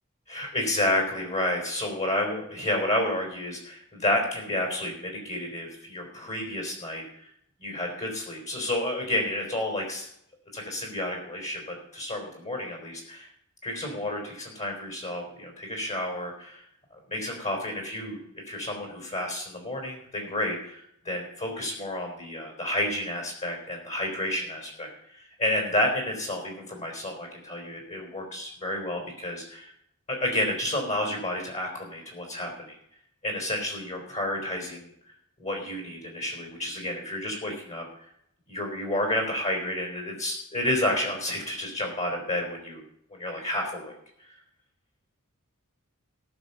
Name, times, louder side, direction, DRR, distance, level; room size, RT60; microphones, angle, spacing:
voice 1, 0.3-7.0 7.6-10.1 10.5-13.3 13.6-16.6 16.9-29.7 30.1-32.7 33.2-34.9 35.4-37.9 38.5-42.8 43.1-44.0 44.3-44.4, left 1 dB, 35° left, 1 dB, 3.7 m, -30 dB
18.0 x 6.2 x 6.8 m, 0.74 s
head